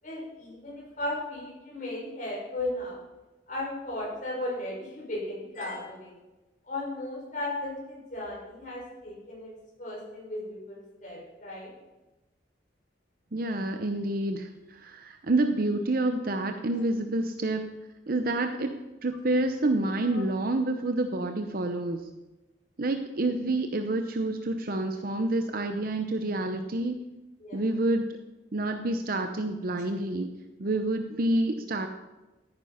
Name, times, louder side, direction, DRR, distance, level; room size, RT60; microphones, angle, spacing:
voice 1, 0.0-3.0 3.5-6.1 6.6-9.5 9.8-11.7 20.1-20.2 27.4-27.6, left 1 dB, 45° left, -4 dB, 5.9 m, -36 dB
voice 2, 13.3-17.7 18.1-22.1 22.8-27.0 27.5-28.1 28.5-30.3 30.6-31.9, right 2 dB, 50° right, 6 dB, 0.7 m, -28 dB
13.5 x 9.8 x 5.6 m, 1.1 s
head